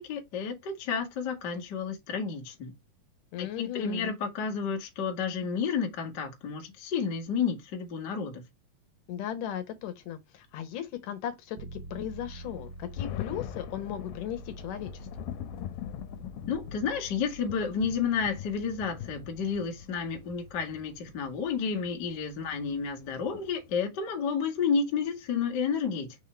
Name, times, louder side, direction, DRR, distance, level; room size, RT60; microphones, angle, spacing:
voice 1, 0.0-2.7 3.4-8.4 16.5-26.2, left 6 dB, 50° left, 1.3 m, -31 dB
voice 2, 3.3-4.2 9.1-15.1, left 10 dB, 70° left, 2.4 m, -37 dB
sound 1, 11.6-23.4, right 2 dB, 80° right, 2.6 m, -48 dB
sound 2, 12.2-23.8, left 12 dB, 90° left, 2.4 m, -42 dB
6.1 x 3.7 x 4.3 m
omnidirectional pair, 4.1 m